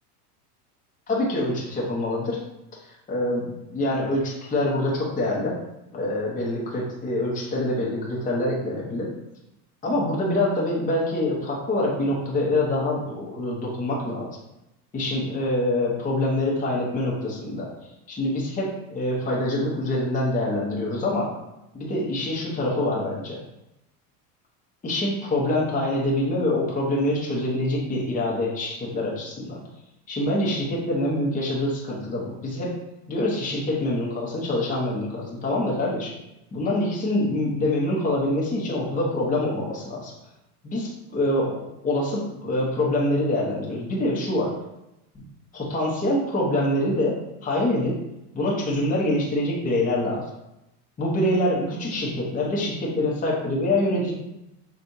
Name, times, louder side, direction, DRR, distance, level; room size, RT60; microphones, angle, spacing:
voice 1, 1.1-2.4 3.1-3.4 3.7-5.6 5.9-9.1 9.8-14.3 14.9-17.7 18.1-21.3 21.7-23.4 24.8-29.6 30.1-32.8 33.1-36.1 36.5-40.1 40.6-44.5 45.5-48.0 48.3-50.2 51.0-54.1, left 1 dB, 15° left, -4 dB, 1.0 m, -25 dB
6.2 x 2.5 x 2.7 m, 0.90 s
supercardioid pair, 120°, 48 cm